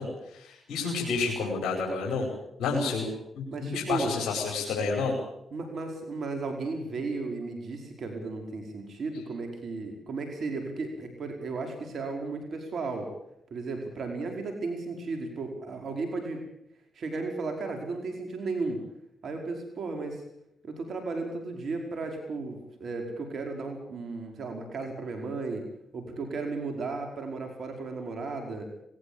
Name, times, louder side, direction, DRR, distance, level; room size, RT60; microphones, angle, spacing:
voice 1, 0.0-2.3 2.6-5.1, left 4 dB, 75° left, 0 dB, 5.3 m, -30 dB
voice 2, 3.5-4.1 5.5-13.1 13.5-16.4 16.9-18.8 19.2-20.2 20.6-25.6 25.9-28.7, right 3 dB, 65° right, 4 dB, 5.0 m, -34 dB
20.0 x 18.5 x 8.8 m, 0.77 s
supercardioid pair, 50°, 0 cm